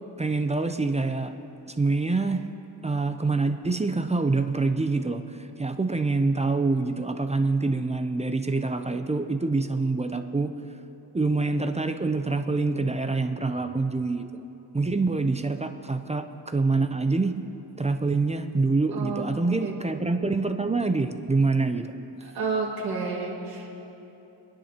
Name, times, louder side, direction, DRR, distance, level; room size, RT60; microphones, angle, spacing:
voice 1, 0.2-1.3 1.7-2.5 2.8-10.5 11.1-14.4 14.7-17.4 17.8-21.9, right 3 dB, 15° right, 7 dB, 0.5 m, -26 dB
voice 2, 18.9-19.3 19.6-19.7 22.2-23.7, right 4 dB, 55° right, -4 dB, 2.2 m, -30 dB
25.0 x 10.0 x 2.9 m, 3.0 s
cardioid pair, 105°, 44 cm